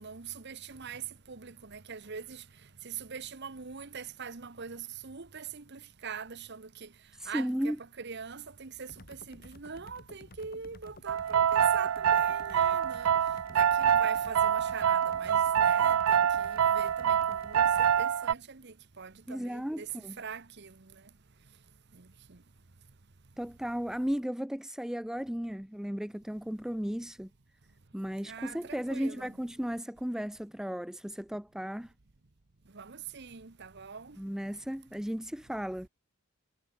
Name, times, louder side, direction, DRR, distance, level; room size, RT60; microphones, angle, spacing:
voice 1, 0.0-19.9 20.2-21.1 21.4-21.6 21.9-22.4 28.2-29.3 32.6-34.2, right 6 dB, 55° right, 1.1 m, -44 dB
voice 2, 7.1-7.8 19.3-20.2 23.4-27.3 27.9-31.9 34.2-35.9, equal, ahead, 0.4 m, -35 dB
sound 1, 8.9-18.1, left 1 dB, 45° left, 3.9 m, -52 dB
sound 2, 11.1-18.3, right 8 dB, 75° right, 0.4 m, -26 dB
head